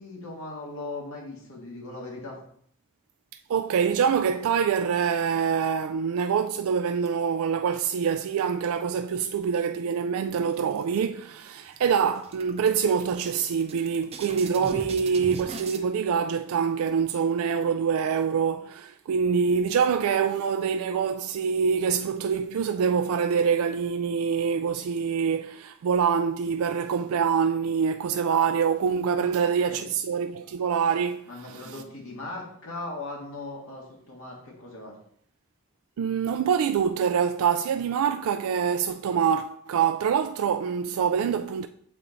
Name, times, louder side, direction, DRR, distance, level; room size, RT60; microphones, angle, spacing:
voice 1, 0.0-2.4 29.2-29.9 31.3-34.9, left 2 dB, 80° left, 1.9 m, -39 dB
voice 2, 3.5-31.8 36.0-41.7, right 6 dB, 85° right, 0.3 m, -25 dB
sound 1, 10.5-11.3 11.6-11.8 12.1-15.8, right 3 dB, 30° right, 0.6 m, -41 dB
7.3 x 4.3 x 3.9 m
head